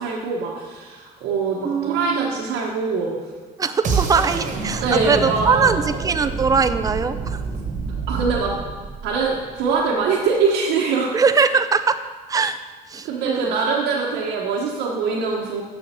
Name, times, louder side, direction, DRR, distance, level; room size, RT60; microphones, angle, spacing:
voice 1, 0.0-3.2 4.8-5.7 8.1-8.6 9.0-11.1 13.0-15.6, right 4 dB, 90° right, -4 dB, 1.2 m, -23 dB
voice 2, 1.6-2.3 3.6-7.4 11.1-12.0 12.3-12.6 12.9-13.5, right 5 dB, 20° right, 10 dB, 0.5 m, -21 dB
sound 1, 3.8-9.8, right 4 dB, 45° right, 1.4 m, -27 dB
7.4 x 6.3 x 6.7 m, 1.4 s
cardioid pair, 110°, 17 cm